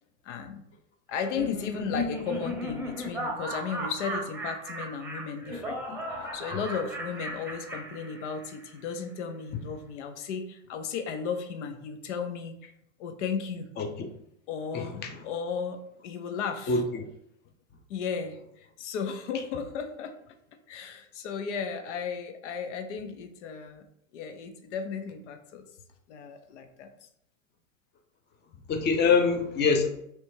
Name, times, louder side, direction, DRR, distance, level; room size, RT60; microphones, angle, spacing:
voice 1, 0.2-0.6 1.1-12.5 13.0-13.7 14.5-16.8 17.9-20.1 20.7-23.9 24.1-25.7 26.1-26.9, left 6 dB, 75° left, 7 dB, 0.7 m, -35 dB
Laughter, 1.1-8.6, equal, 5° right, 0.8 m, -36 dB
voice 2, 14.7-15.2 16.7-17.0 28.7-29.9, left 5 dB, 30° left, 4 dB, 0.7 m, -25 dB
3.3 x 2.9 x 4.3 m, 0.74 s
hypercardioid pair, 110°, 36 cm